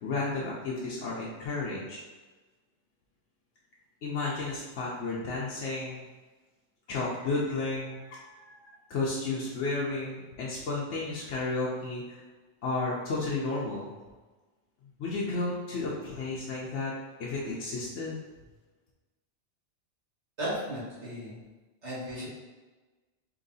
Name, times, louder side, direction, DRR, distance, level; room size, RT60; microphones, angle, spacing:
voice 1, 0.0-2.0 4.0-6.0 6.9-12.2 12.6-13.9 15.0-16.9 17.2-18.2, left 3 dB, 85° left, -6 dB, 1.1 m, -32 dB
voice 2, 20.4-21.3 21.8-22.3, equal, 70° right, -8 dB, 2.0 m, -35 dB
3.9 x 3.0 x 4.0 m, 1.3 s
omnidirectional pair, 1.2 m